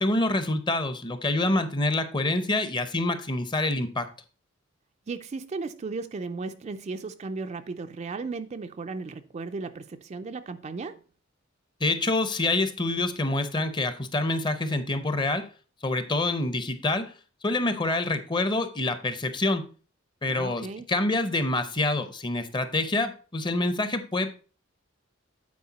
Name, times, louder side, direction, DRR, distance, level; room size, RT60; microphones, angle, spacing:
voice 1, 0.0-4.1 11.8-15.5 15.8-17.1 17.4-19.6 20.2-24.3, left 2 dB, 25° left, 0.6 m, -26 dB
voice 2, 5.1-11.0 20.3-20.9, right 4 dB, 35° right, 0.3 m, -35 dB
8.5 x 4.4 x 4.0 m
head